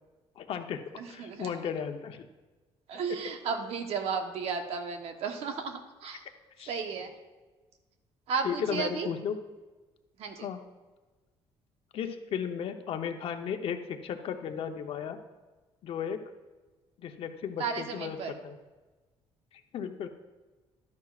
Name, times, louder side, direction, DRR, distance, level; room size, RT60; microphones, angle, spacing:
voice 1, 0.4-0.8 1.1-2.3 6.6-6.8 8.4-9.4 10.4-10.6 11.9-15.2 15.8-16.2 17.0-18.6 19.7-20.1, left 7 dB, 60° left, 6 dB, 0.9 m, -35 dB
voice 2, 1.0-1.5 2.9-6.2 6.7-7.1 8.3-9.1 10.2-10.5 17.6-18.3, right 5 dB, 70° right, 5 dB, 1.1 m, -34 dB
12.0 x 10.5 x 2.5 m, 1.2 s
cardioid pair, 105°, 11 cm